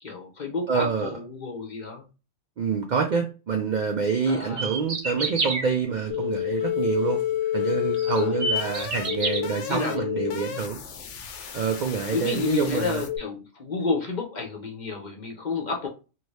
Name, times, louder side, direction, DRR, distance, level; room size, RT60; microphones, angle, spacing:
voice 1, 0.0-2.0 4.3-4.7 8.0-8.4 9.7-10.0 12.1-15.9, left 4 dB, 45° left, 0.7 m, -30 dB
voice 2, 0.7-1.1 2.6-7.2 7.5-10.8 11.5-13.1, right 5 dB, 60° right, 0.4 m, -27 dB
sound 1, 4.4-5.6 7.3-7.4 8.0-9.4, right 2 dB, 45° right, 0.8 m, -28 dB
sound 2, 6.1-13.2, left 11 dB, 85° left, 0.9 m, -30 dB
2.8 x 2.6 x 3.2 m
omnidirectional pair, 1.2 m